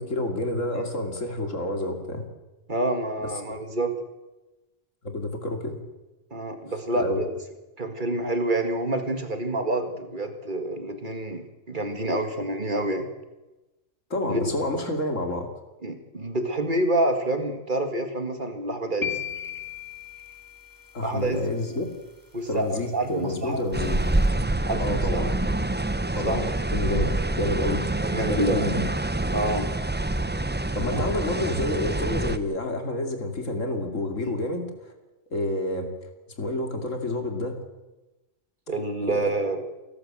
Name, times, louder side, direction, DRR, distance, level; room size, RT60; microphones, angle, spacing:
voice 1, 0.0-2.3 5.0-5.8 7.0-7.2 14.1-15.5 20.9-21.9 22.5-24.0 24.8-25.3 26.2-26.4 26.7-27.8 28.3-28.8 30.7-34.7 35.3-35.9 36.4-37.6 39.1-39.2, left 1 dB, 75° left, 5 dB, 3.1 m, -29 dB
voice 2, 2.7-3.9 6.3-7.3 7.8-13.1 14.3-14.4 15.8-19.2 21.0-21.4 21.7-21.8 22.3-23.6 24.7-25.3 26.3-26.5 26.8-27.1 28.0-28.7 29.3-29.7 30.9-31.0 34.2-34.4 38.7-39.6, right 1 dB, 40° right, 6 dB, 2.0 m, -28 dB
sound 1, 19.0-21.1, left 8 dB, 15° left, 2.1 m, -35 dB
sound 2, 23.7-32.4, right 2 dB, 15° right, 0.5 m, -26 dB
28.5 x 12.5 x 7.6 m, 1.1 s
omnidirectional pair, 1.3 m